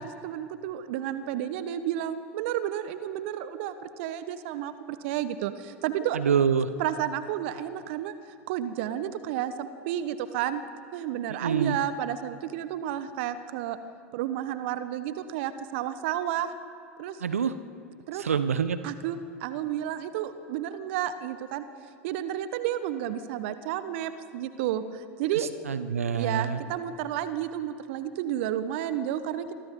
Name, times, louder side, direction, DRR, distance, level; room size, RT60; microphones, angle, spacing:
voice 1, 0.0-4.7 5.0-6.2 6.8-8.1 8.5-10.6 10.9-13.8 14.1-16.5 17.0-17.2 18.1-18.2 18.8-21.7 22.0-25.5 26.1-29.5, right 11 dB, 55° right, 12 dB, 1.3 m, -31 dB
voice 2, 6.1-6.7 11.4-11.8 17.2-17.5 18.2-18.8 25.7-26.6, right 7 dB, 75° right, 13 dB, 0.9 m, -25 dB
28.0 x 24.5 x 3.9 m, 2.4 s
figure-of-eight pair, 85°, 8 cm